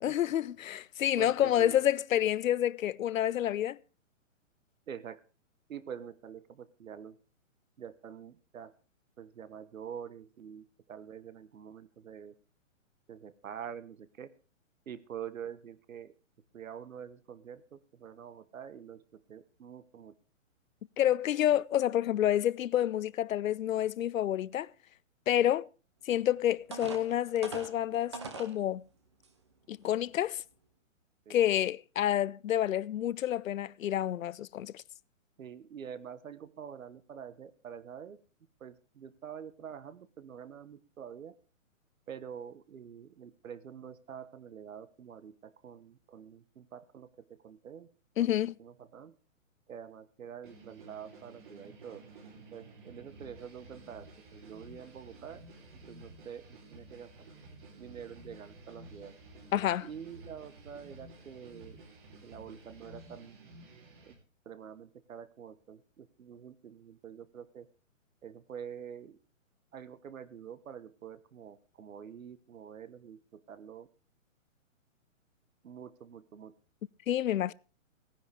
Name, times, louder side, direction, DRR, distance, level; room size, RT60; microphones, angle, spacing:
voice 1, 0.0-3.8 21.0-24.7 25.3-25.7 26.1-28.8 29.7-30.4 31.3-34.8 48.2-48.5 59.5-59.9 77.1-77.5, left 11 dB, 80° left, 0.6 m, -29 dB
voice 2, 1.2-1.8 4.9-5.2 5.7-7.2 7.8-8.7 9.2-12.3 13.1-14.3 14.9-16.1 16.5-20.1 31.3-31.5 35.4-38.2 38.6-41.3 42.1-47.9 48.2-48.3 48.6-49.1 49.7-52.0 52.5-55.4 55.9-57.1 57.8-59.1 59.8-61.8 62.2-63.4 64.0-64.1 64.4-67.7 68.2-69.2 69.7-73.9 75.6-76.5, right 8 dB, 80° right, 1.2 m, -46 dB
sound 1, 26.1-26.2 26.7-28.6 29.2-29.3 29.8-30.0, right 4 dB, 20° right, 0.7 m, -42 dB
sound 2, 50.4-64.1, right 2 dB, 35° right, 3.1 m, -52 dB
17.5 x 10.0 x 3.4 m
hypercardioid pair, 175°, 40 cm